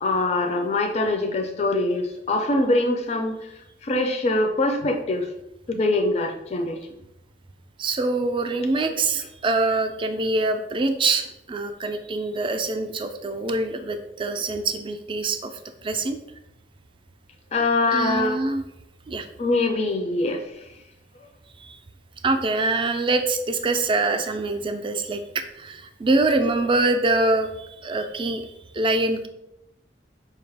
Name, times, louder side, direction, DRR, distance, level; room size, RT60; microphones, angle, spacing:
voice 1, 0.0-5.3 5.7-6.8 8.6-9.0 17.5-18.4 19.4-20.7, left 2 dB, 40° left, 4 dB, 0.4 m, -24 dB
voice 2, 7.8-15.5 15.8-16.2 17.9-18.6 19.1-19.3 21.6-21.8 22.2-29.3, right 2 dB, 30° right, 7 dB, 0.3 m, -24 dB
5.0 x 2.3 x 3.3 m, 0.85 s
head